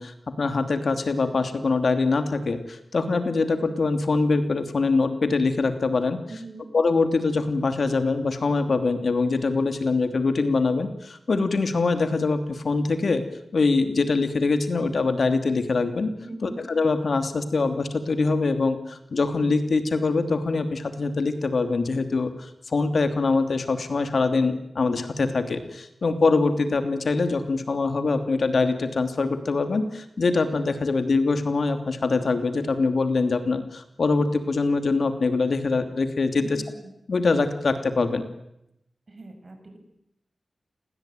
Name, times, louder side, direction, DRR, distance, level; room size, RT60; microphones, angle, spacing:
voice 1, 0.0-6.2 6.7-13.2 13.5-16.1 16.4-36.5 37.1-38.2, left 3 dB, 65° left, 8 dB, 2.9 m, -23 dB
voice 2, 6.3-6.7 16.2-16.6 36.3-36.9 39.1-39.8, right 2 dB, 40° right, 5 dB, 7.5 m, -41 dB
29.0 x 21.0 x 9.3 m, 0.82 s
wide cardioid pair, 95°, 0 cm